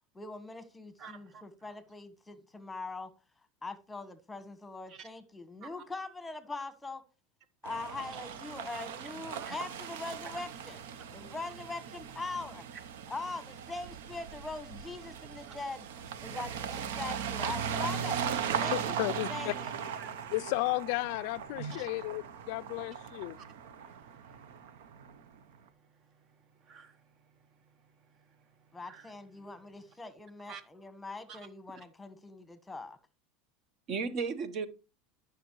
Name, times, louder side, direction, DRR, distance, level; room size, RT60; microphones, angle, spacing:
voice 1, 0.1-3.1 3.6-7.0 7.6-12.6 13.1-15.9 16.2-18.2 18.6-19.7 28.7-33.0, left 3 dB, 10° left, 1.2 m, -42 dB
voice 2, 1.0-1.4 4.9-5.1 5.6-5.7 9.4-9.6 10.3-10.4 17.7-17.8 20.0-20.1 21.6-21.9 23.8-24.0 26.7-27.0 28.9-29.1 30.5-30.6 31.3-31.4 33.9-34.7, right 5 dB, 45° right, 1.0 m, -39 dB
sound 1, 7.6-25.3, right 7 dB, 80° right, 0.8 m, -38 dB
voice 3, 18.7-19.5 20.3-23.4, left 21 dB, 65° left, 0.3 m, -33 dB
10.5 x 6.2 x 3.1 m
supercardioid pair, 115°, 0 cm